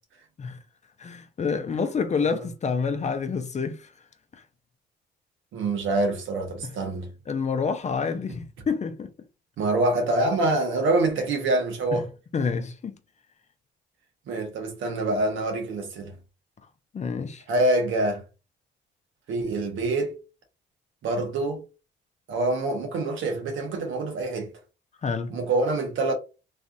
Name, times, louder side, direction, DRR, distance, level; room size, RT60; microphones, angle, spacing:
voice 1, 1.0-3.9 4.3-4.4 6.6-6.7 7.3-9.1 11.9-12.0 12.3-13.0 16.9-17.4 25.0-25.4, left 5 dB, 35° left, 0.6 m, -28 dB
voice 2, 5.5-7.1 9.6-12.1 14.3-16.2 17.5-18.2 19.3-20.1 21.0-21.7 22.3-24.5 25.3-26.1, right 2 dB, 80° right, 1.3 m, -25 dB
3.2 x 2.5 x 2.6 m
cardioid pair, 90°, 20 cm